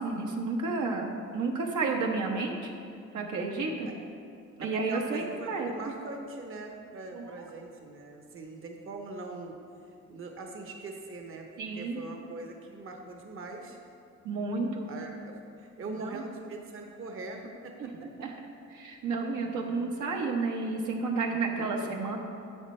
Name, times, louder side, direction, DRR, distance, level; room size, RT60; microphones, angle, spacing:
voice 1, 0.0-2.7 3.1-3.9 4.6-5.9 7.1-7.4 11.6-12.0 14.2-14.9 15.9-16.3 17.8-18.3 18.7-22.2, right 3 dB, 75° right, 1 dB, 1.1 m, -31 dB
voice 2, 4.6-9.6 10.1-11.5 11.7-13.8 14.9-17.9, right 3 dB, 45° right, 3 dB, 1.0 m, -42 dB
9.8 x 7.5 x 3.2 m, 2.4 s
cardioid pair, 90°, 30 cm